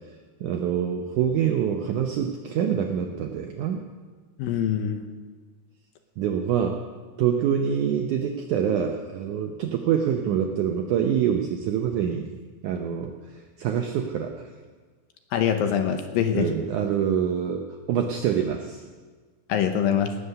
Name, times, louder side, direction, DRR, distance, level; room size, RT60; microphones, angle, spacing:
voice 1, 0.4-3.8 6.2-6.8 7.2-12.3 12.6-13.1 13.6-14.5 16.3-18.8, right 8 dB, 80° right, 4 dB, 1.7 m, -25 dB
voice 2, 4.4-5.0 15.3-16.5 19.5-20.2, left 8 dB, 75° left, 6 dB, 2.4 m, -24 dB
19.0 x 8.2 x 6.6 m, 1.5 s
omnidirectional pair, 4.6 m